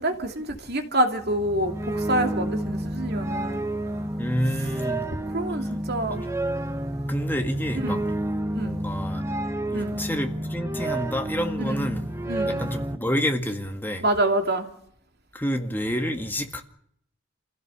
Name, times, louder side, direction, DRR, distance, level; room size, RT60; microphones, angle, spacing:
voice 1, 0.0-3.6 5.3-6.3 7.8-8.0 8.5-8.8 9.7-10.0 11.6-11.9 12.3-12.7 14.0-14.7, right 1 dB, 50° right, 2.7 m, -27 dB
sound 1, 1.2-13.0, right 1 dB, 15° right, 1.0 m, -30 dB
voice 2, 4.2-5.1 5.6-5.7 7.1-8.0 8.6-9.2 9.7-12.1 12.5-14.0 15.3-16.6, equal, 10° left, 2.0 m, -29 dB
27.0 x 16.5 x 7.0 m
head